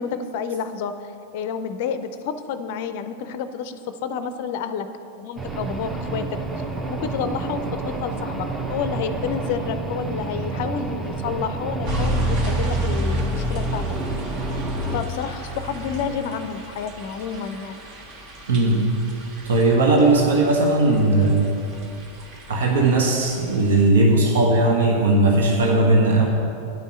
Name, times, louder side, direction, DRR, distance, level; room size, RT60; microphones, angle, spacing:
voice 1, 0.0-4.9 5.2-6.2 6.9-13.8 14.9-17.8, left 6 dB, 50° left, 11 dB, 0.5 m, -30 dB
sound 1, 5.4-15.0, right 3 dB, 15° right, 0.9 m, -30 dB
sound 2, 11.8-23.9, equal, 40° right, 1.4 m, -30 dB
voice 2, 18.5-18.9 19.4-21.5 22.5-26.2, right 2 dB, 65° right, -1 dB, 1.2 m, -18 dB
9.4 x 5.3 x 7.5 m, 2.7 s
figure-of-eight pair, 90°, 0 cm